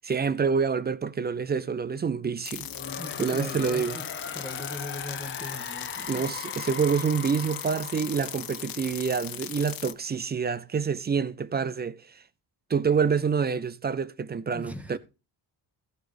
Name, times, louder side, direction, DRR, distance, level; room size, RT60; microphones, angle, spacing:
voice 1, 0.0-2.7 3.2-4.0 6.1-12.0 12.7-15.0, right 6 dB, 25° right, 0.5 m, -27 dB
sound 1, 2.4-9.9, left 11 dB, 50° left, 0.8 m, -38 dB
sound 2, 2.5-9.4, left 5 dB, 25° left, 1.0 m, -39 dB
voice 2, 3.0-4.1 4.3-6.3 14.5-15.0, left 1 dB, 5° right, 1.6 m, -39 dB
15.0 x 6.5 x 5.1 m
cardioid pair, 165°, 43 cm